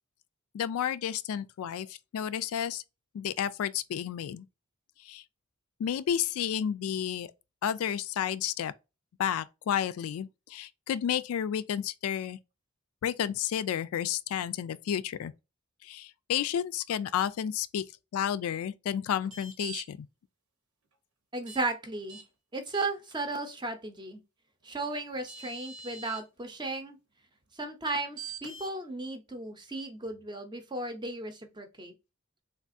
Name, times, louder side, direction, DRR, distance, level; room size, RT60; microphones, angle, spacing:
voice 1, 0.5-2.8 3.1-4.5 5.0-5.2 5.8-7.3 7.6-8.7 9.2-12.4 13.0-15.3 15.8-17.8 18.1-20.0, left 9 dB, 75° left, 0.3 m, -31 dB
sound 1, 19.2-19.8 21.5-21.6 22.1-22.2 22.7-23.1 24.8-24.9 25.3-26.2 28.2-28.7, right 5 dB, 70° right, 1.0 m, -43 dB
voice 2, 21.3-22.2 22.5-24.2 24.6-27.0 27.5-31.9, right 2 dB, 20° right, 0.6 m, -35 dB
3.4 x 2.4 x 2.5 m
head